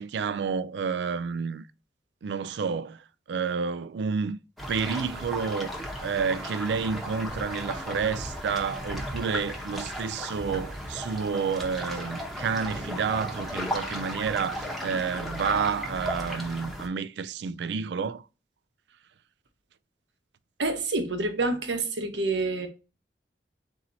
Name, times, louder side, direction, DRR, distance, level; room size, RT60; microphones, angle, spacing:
voice 1, 0.0-1.6 2.2-4.4 4.7-5.7 6.0-18.2, right 5 dB, 70° right, 0.3 m, -30 dB
sound 1, 4.6-16.9, equal, ahead, 0.9 m, -35 dB
voice 2, 20.6-22.7, right 2 dB, 90° right, 0.9 m, -27 dB
4.2 x 2.8 x 3.9 m
head